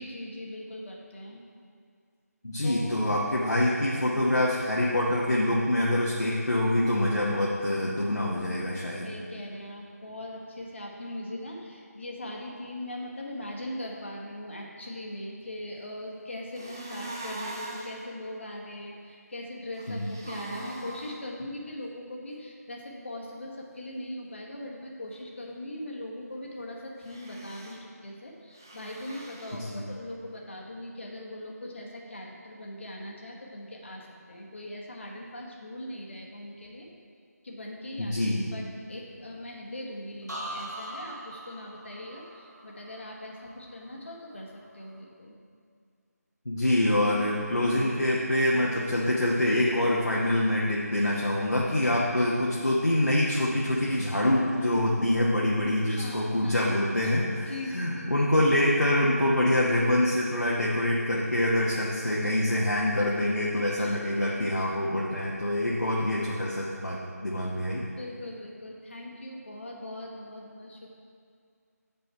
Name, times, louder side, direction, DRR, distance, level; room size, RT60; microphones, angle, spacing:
voice 1, 0.0-1.4 2.6-2.9 9.0-36.9 37.4-45.4 55.9-56.7 57.4-58.2 63.8-64.0 68.0-70.9, left 1 dB, 45° left, -1 dB, 1.2 m, -40 dB
voice 2, 2.4-9.1 19.9-20.1 29.7-29.9 38.0-38.5 46.4-67.8, left 1 dB, 75° left, -4 dB, 1.1 m, -25 dB
sound 1, 16.5-18.0 19.7-21.1 27.0-27.8 28.5-29.6, right 2 dB, 15° right, 0.3 m, -40 dB
sound 2, 40.3-44.1 44.5-44.9, right 1 dB, 85° right, 1.5 m, -42 dB
7.7 x 5.5 x 4.5 m, 2.2 s
figure-of-eight pair, 165°, 9 cm